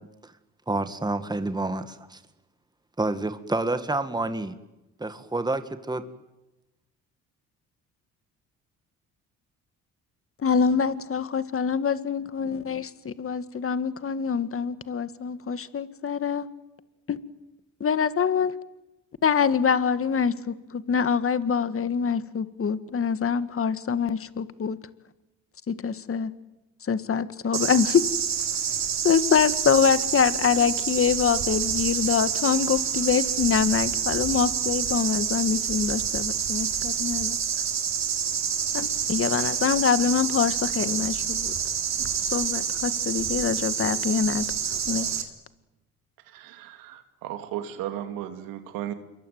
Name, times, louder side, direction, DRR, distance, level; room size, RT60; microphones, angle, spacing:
voice 1, 0.7-2.2 3.0-4.5 5.0-6.0, right 2 dB, 10° right, 10 dB, 1.9 m, -28 dB
voice 2, 10.4-16.5 17.1-17.2 17.8-18.5 19.2-24.8 25.7-26.3 26.9-28.0 29.0-37.4 38.7-41.5 42.3-44.4 44.9-45.1, left 6 dB, 40° left, 13 dB, 1.7 m, -25 dB
sound 1, 27.5-45.2, right 7 dB, 55° right, 3.5 m, -28 dB
voice 3, 46.3-48.9, right 11 dB, 90° right, 8 dB, 2.5 m, -35 dB
27.5 x 22.5 x 9.4 m, 1.0 s
supercardioid pair, 75°, 33 cm